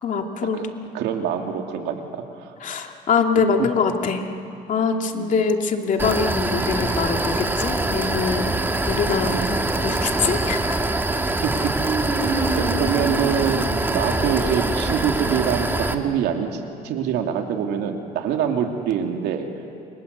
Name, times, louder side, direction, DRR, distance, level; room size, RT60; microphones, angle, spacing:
voice 1, 0.0-0.8 2.6-4.2 4.7-9.4 9.8-10.8, left 5 dB, 50° left, 3 dB, 2.6 m, -23 dB
voice 2, 0.9-2.5 5.1-5.3 9.3-9.6 11.4-11.7 12.5-19.5, right 8 dB, 85° right, 3 dB, 2.8 m, -25 dB
sound 1, 6.0-15.9, right 2 dB, 10° right, 1.9 m, -24 dB
Human voice, 9.7-10.6 11.8-14.5, right 3 dB, 60° right, 7.7 m, -30 dB
28.5 x 25.0 x 8.3 m, 2.5 s
cardioid pair, 110°, 17 cm